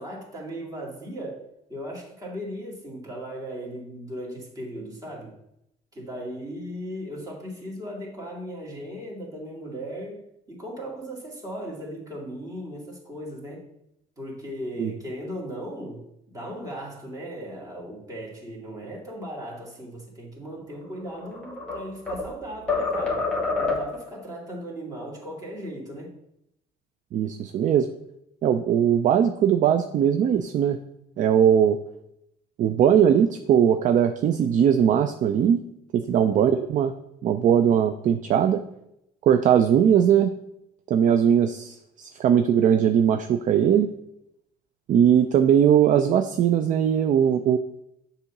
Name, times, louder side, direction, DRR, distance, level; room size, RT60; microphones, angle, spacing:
voice 1, 0.0-5.4 5.9-10.2 10.5-13.7 14.2-16.0 16.3-23.3 23.6-26.2 36.1-36.3, equal, 20° right, -3 dB, 2.3 m, -37 dB
sound 1, 21.0-22.3 22.7-24.1, left 3 dB, 5° left, 1.8 m, -27 dB
voice 2, 27.1-27.9 28.4-30.8 31.2-31.8 32.6-35.6 35.9-36.9 37.2-38.6 39.2-40.3 40.9-43.9 44.9-47.6, right 9 dB, 50° right, 8 dB, 0.4 m, -20 dB
6.8 x 2.8 x 5.8 m, 0.80 s
cardioid pair, 110°, 17 cm